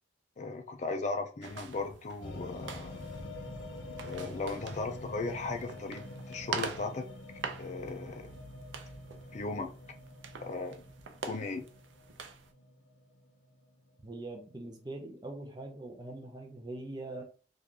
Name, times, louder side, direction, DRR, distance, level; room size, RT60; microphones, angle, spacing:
voice 1, 0.4-3.1 4.0-7.1 7.6-8.4 9.3-9.7 10.4-10.8 11.2-11.7, left 3 dB, 40° left, 0.4 m, -37 dB
sound 1, 1.4-12.5, right 5 dB, 85° right, 0.5 m, -45 dB
sound 2, 2.2-14.7, left 1 dB, 85° left, 0.7 m, -46 dB
voice 2, 14.0-17.2, right 2 dB, 25° right, 0.6 m, -42 dB
2.9 x 2.5 x 3.6 m
head